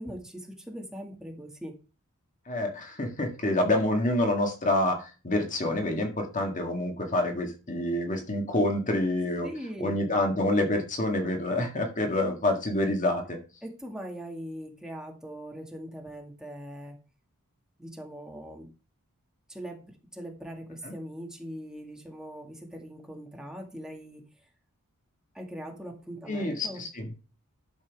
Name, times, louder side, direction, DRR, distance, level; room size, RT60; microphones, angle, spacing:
voice 1, 0.0-1.7 9.4-10.0 13.6-17.0 17.8-18.7 19.5-19.8 20.1-24.2 25.3-26.8, equal, 5° right, 0 dB, 2.0 m, -41 dB
voice 2, 2.5-9.5 9.8-13.4 20.8-20.9 26.3-27.1, left 1 dB, 35° left, 3 dB, 1.8 m, -27 dB
11.0 x 7.3 x 3.6 m, 0.34 s
head